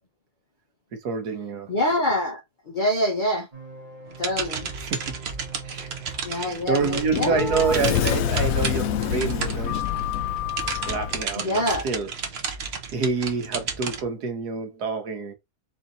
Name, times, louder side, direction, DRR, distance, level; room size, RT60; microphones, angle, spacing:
voice 1, 1.0-1.7 4.8-5.1 5.6-9.8 10.9-12.1 12.5-12.6 12.9-15.3, right 5 dB, 80° right, 1.7 m, -28 dB
voice 2, 1.7-2.4 2.7-3.5 4.2-4.7 6.2-7.8 11.4-11.8, left 1 dB, 45° left, 0.6 m, -25 dB
sound 1, 3.5-8.5, right 6 dB, 25° right, 1.3 m, -42 dB
sound 2, 4.1-10.0 10.4-14.0, right 5 dB, 50° right, 0.9 m, -32 dB
Sliding door, 6.4-11.2, left 10 dB, 70° left, 0.9 m, -27 dB
4.4 x 2.8 x 3.9 m
omnidirectional pair, 1.7 m